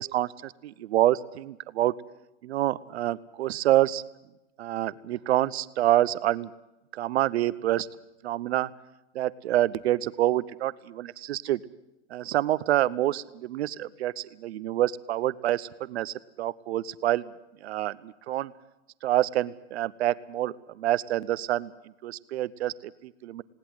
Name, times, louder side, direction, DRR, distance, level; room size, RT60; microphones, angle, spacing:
voice 1, 0.0-1.9 2.4-4.0 4.6-6.5 6.9-7.9 8.2-8.7 9.1-11.6 12.1-17.2 17.6-18.5 19.0-21.7 22.0-23.4, right 14 dB, 65° right, 18 dB, 0.8 m, -27 dB
20.5 x 18.0 x 7.8 m, 0.92 s
hypercardioid pair, 145°, 35 cm